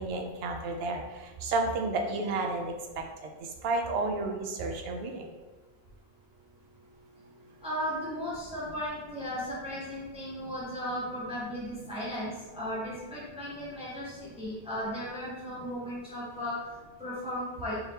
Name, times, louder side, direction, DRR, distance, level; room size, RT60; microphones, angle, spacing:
voice 1, 0.0-3.3 3.6-5.3, right 3 dB, 75° right, 4 dB, 0.8 m, -31 dB
voice 2, 7.6-16.6 17.0-17.8, equal, 5° right, -8 dB, 0.9 m, -36 dB
3.6 x 2.7 x 3.4 m, 1.2 s
omnidirectional pair, 1.1 m